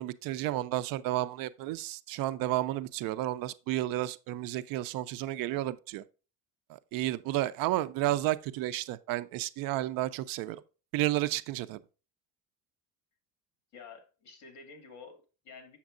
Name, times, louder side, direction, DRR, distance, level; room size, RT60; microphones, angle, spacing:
voice 1, 0.0-6.0 6.7-10.6 10.9-11.8, right 15 dB, 75° right, 0.6 m, -32 dB
voice 2, 13.7-15.8, left 5 dB, 50° left, 2.2 m, -50 dB
7.3 x 7.1 x 2.5 m
cardioid pair, 175°, 35 cm